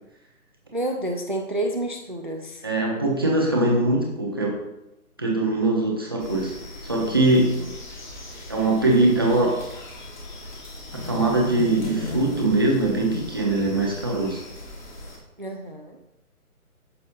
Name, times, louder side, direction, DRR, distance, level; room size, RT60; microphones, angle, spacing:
voice 1, 0.7-2.6 7.6-7.7 15.4-16.0, right 1 dB, 35° right, 4 dB, 0.5 m, -29 dB
voice 2, 2.6-4.6 5.2-6.5 6.8-7.6 8.5-9.6 10.9-14.4, right 2 dB, 15° right, -2 dB, 0.8 m, -22 dB
sound 1, 6.2-15.2, left 1 dB, 30° left, 1.6 m, -37 dB
11.0 x 6.9 x 2.7 m, 0.93 s
hypercardioid pair, 170°, 45 cm